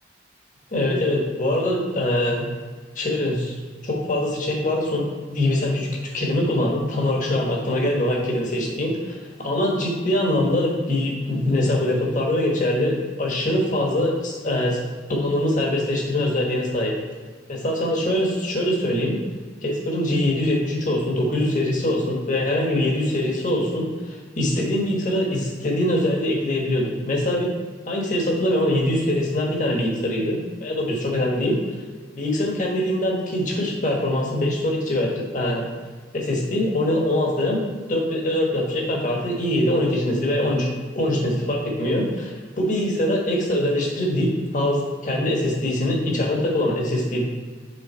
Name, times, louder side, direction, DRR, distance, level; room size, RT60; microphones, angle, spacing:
voice 1, 0.7-2.4 2.9-3.5 3.8-14.8 15.1-16.9 17.5-19.2 19.6-27.5 27.9-31.6 32.1-35.6 36.1-37.6 37.9-40.7 40.9-47.3, left 1 dB, 45° left, -2 dB, 1.3 m, -23 dB
6.5 x 3.7 x 4.4 m, 1.4 s
head